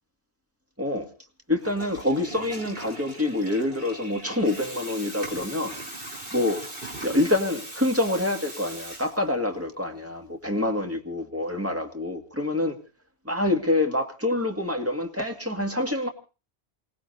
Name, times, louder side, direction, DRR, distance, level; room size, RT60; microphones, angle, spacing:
voice 1, 0.8-1.1 1.5-5.8 6.3-6.6 7.0-12.8 13.3-16.1, left 1 dB, 15° right, 2.0 m, -26 dB
Water tap faucet / Toilet flush, 1.5-9.5, right 1 dB, 60° right, 4.0 m, -40 dB
28.5 x 18.5 x 2.7 m
omnidirectional pair, 1.1 m